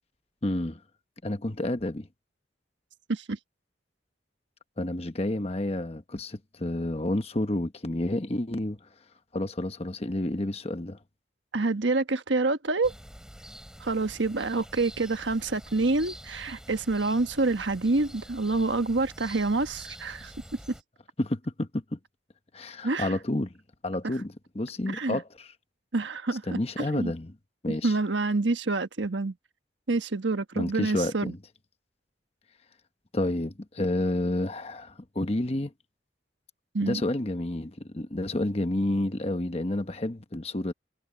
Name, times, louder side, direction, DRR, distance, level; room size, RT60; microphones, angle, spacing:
voice 1, 0.4-0.8 1.2-2.1 4.8-8.8 9.3-11.0 21.2-22.0 22.5-23.5 23.8-25.5 26.5-27.3 27.6-27.9 30.5-31.4 33.1-35.7 36.8-40.7, left 1 dB, 35° left, 1.1 m, -30 dB
voice 2, 11.5-12.9 13.8-20.3 22.8-23.2 24.9-25.2 25.9-27.1 27.7-29.3 29.9-31.3 36.7-37.0, right 3 dB, 90° right, 1.3 m, -27 dB
sound 1, 12.8-20.8, equal, 5° right, 6.2 m, -46 dB
head